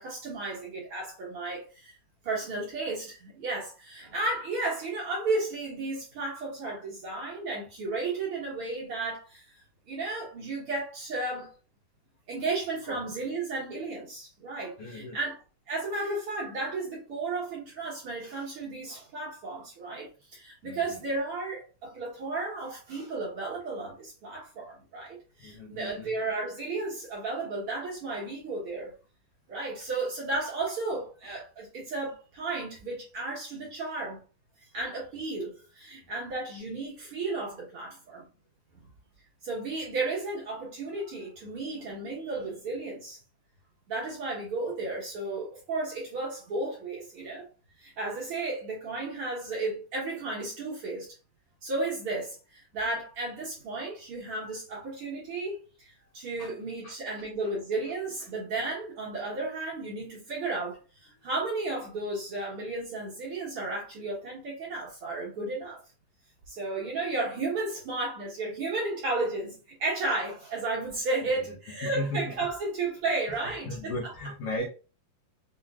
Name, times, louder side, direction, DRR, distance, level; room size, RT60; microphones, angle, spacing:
voice 1, 0.0-2.0 2.2-11.5 12.3-28.9 29.5-34.2 34.7-38.2 39.4-43.2 43.9-47.4 47.8-51.1 51.6-65.8 66.5-74.1, right 3 dB, 55° right, 1.7 m, -33 dB
voice 2, 14.8-15.2 20.6-21.0 25.4-26.1 56.4-56.5 56.8-56.9 71.8-72.3 73.4-74.6, left 1 dB, 75° left, 1.3 m, -36 dB
5.6 x 2.9 x 2.4 m
omnidirectional pair, 3.7 m